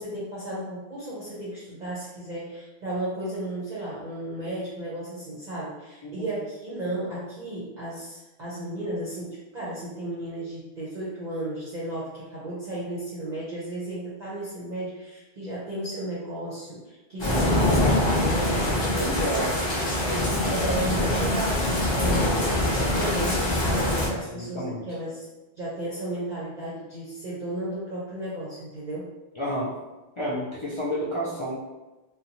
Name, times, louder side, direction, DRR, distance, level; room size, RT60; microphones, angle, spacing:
voice 1, 0.0-19.6 20.5-21.6 21.9-25.3 25.6-29.1, right 1 dB, 50° right, -8 dB, 0.7 m, -34 dB
sound 1, 17.2-24.1, left 1 dB, 30° left, 0.7 m, -24 dB
voice 2, 18.9-19.5 20.0-20.6 24.1-24.8 29.3-29.7 30.2-31.6, equal, 50° left, -6 dB, 0.3 m, -30 dB
2.6 x 2.2 x 2.8 m, 1.1 s
omnidirectional pair, 1.1 m